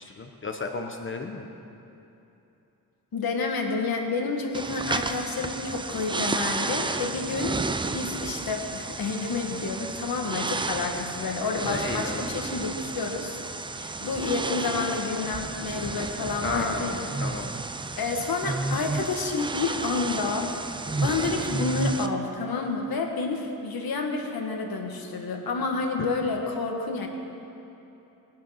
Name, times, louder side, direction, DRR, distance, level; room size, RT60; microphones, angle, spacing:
voice 1, 0.0-1.5 11.7-12.3 16.4-16.9 17.2-17.5, left 3 dB, 35° left, 4 dB, 0.8 m, -33 dB
voice 2, 3.1-7.6 7.9-13.4 13.7-17.1 18.0-20.5 21.0-27.1, left 4 dB, 75° left, 2 dB, 1.7 m, -29 dB
sound 1, 4.5-22.1, right 3 dB, 15° right, 0.3 m, -32 dB
20.5 x 7.5 x 5.8 m, 2.9 s
wide cardioid pair, 160°, 36 cm